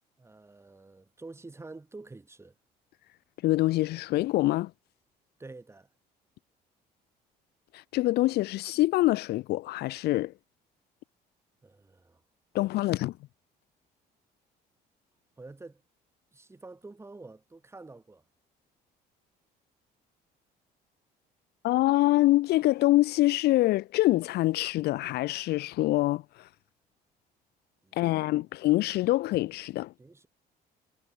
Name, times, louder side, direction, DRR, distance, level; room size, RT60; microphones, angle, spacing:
voice 1, 0.2-2.5 5.4-5.9 11.6-12.2 13.0-13.1 15.4-15.8 16.3-18.2 27.8-27.9 28.3-28.4 30.0-30.3, right 3 dB, 15° right, 2.6 m, -48 dB
voice 2, 3.4-4.7 7.7-10.3 12.5-13.2 21.6-26.5 27.9-29.9, left 17 dB, 75° left, 0.6 m, -25 dB
cardioid pair, 110°, 17 cm